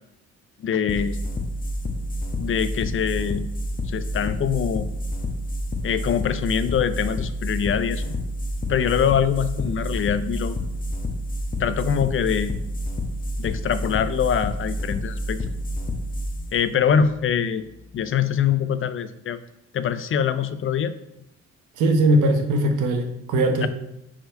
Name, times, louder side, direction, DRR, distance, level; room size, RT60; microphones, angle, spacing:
voice 1, 0.6-1.2 2.4-3.5 3.9-4.9 5.8-8.1 8.7-10.5 11.6-12.5 13.4-15.4 16.5-17.6 17.9-19.4 19.7-20.9 23.6-23.7, left 8 dB, 45° left, 12 dB, 0.4 m, -24 dB
sound 1, 0.9-17.9, left 1 dB, 30° left, 0.9 m, -29 dB
voice 2, 21.8-23.7, right 1 dB, 90° right, 5 dB, 0.9 m, -20 dB
4.6 x 4.3 x 5.2 m, 0.82 s
cardioid pair, 90°, 30 cm